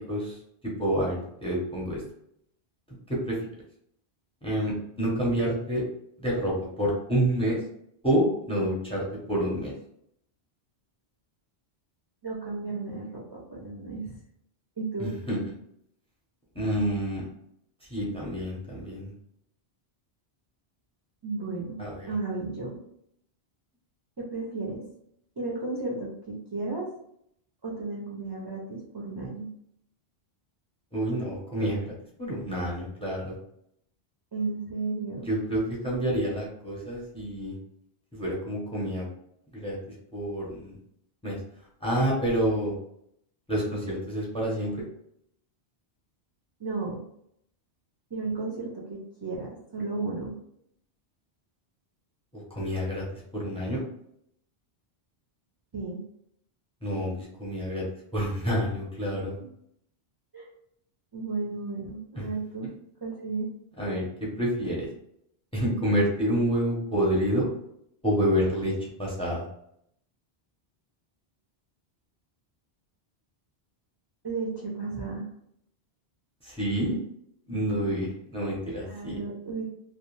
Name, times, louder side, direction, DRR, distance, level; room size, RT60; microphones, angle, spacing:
voice 1, 0.1-0.4 0.8-2.0 3.1-3.4 4.4-5.8 6.2-7.6 8.0-9.7 15.0-15.4 16.5-17.2 17.9-19.1 21.8-22.1 30.9-33.3 35.2-37.5 38.1-39.1 39.5-39.8 40.1-40.8 41.2-41.4 41.8-42.7 43.5-44.8 52.3-53.0 53.3-53.8 56.8-57.8 58.1-59.4 62.1-62.2 63.8-64.9 65.5-67.5 68.0-68.7 69.0-69.4 76.4-77.0 77.5-79.2, equal, 5° left, -3 dB, 0.6 m, -28 dB
voice 2, 12.2-14.2 14.8-15.1 21.2-21.8 22.1-22.8 24.2-24.8 25.4-26.9 27.6-29.5 34.3-35.3 46.6-47.0 48.1-50.3 55.7-56.0 60.3-60.5 61.1-62.7 63.0-63.5 74.2-75.2 78.8-79.6, right 3 dB, 35° right, -5 dB, 0.4 m, -33 dB
2.4 x 2.2 x 3.1 m, 0.73 s
omnidirectional pair, 1.1 m